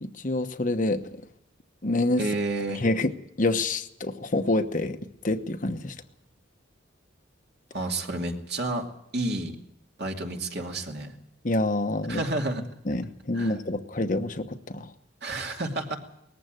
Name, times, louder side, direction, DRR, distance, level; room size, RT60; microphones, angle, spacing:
voice 1, 0.0-1.0 1.8-2.2 2.8-3.1 3.4-5.0 5.2-5.9 11.4-12.2 12.9-14.9, left 2 dB, 40° left, 7 dB, 1.0 m, -27 dB
voice 2, 2.2-2.8 7.7-8.9 9.1-9.6 10.0-11.1 12.1-12.7 13.3-13.6 15.2-16.0, right 2 dB, 55° right, 2 dB, 2.6 m, -30 dB
19.5 x 14.5 x 9.1 m, 0.78 s
head